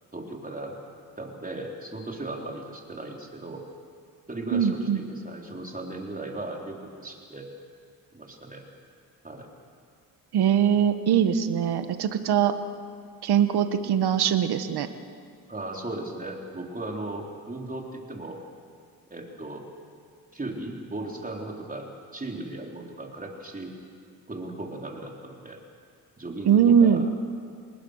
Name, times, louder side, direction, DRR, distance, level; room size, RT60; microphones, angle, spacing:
voice 1, 0.1-0.8 1.2-3.6 4.3-7.5 8.1-8.6 9.2-9.5 15.5-18.4 19.1-19.7 20.3-23.7 24.3-25.6 26.2-27.0, right 2 dB, 20° right, 0 dB, 3.8 m, -37 dB
voice 2, 4.5-5.0 10.3-12.5 13.2-14.9 26.5-27.1, right 8 dB, 75° right, 9 dB, 1.5 m, -21 dB
29.0 x 20.5 x 6.5 m, 2.2 s
cardioid pair, 85°, 39 cm